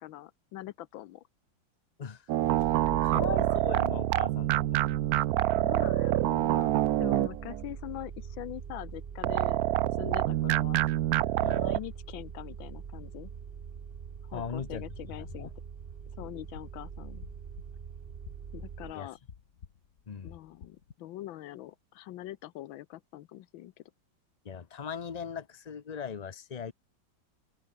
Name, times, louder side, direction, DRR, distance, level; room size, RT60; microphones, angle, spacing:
voice 1, 0.0-1.2 2.8-3.3 5.6-9.6 10.0-10.9 11.5-13.3 14.3-15.5 16.2-17.2 18.5-19.2 20.2-23.8, left 14 dB, 90° left, 1.5 m, -43 dB
sound 1, 2.3-7.6 9.2-11.8, right 14 dB, 75° right, 0.9 m, -27 dB
sound 2, 2.4-18.9, right 7 dB, 45° right, 0.8 m, -43 dB
voice 2, 2.9-4.8 11.4-11.7 14.3-14.9 15.2-15.5 18.9-19.1 20.1-20.3 24.4-26.7, left 7 dB, 70° left, 0.3 m, -39 dB
sound 3, 16.0-20.9, left 7 dB, 45° left, 1.5 m, -52 dB
open air
omnidirectional pair, 2.1 m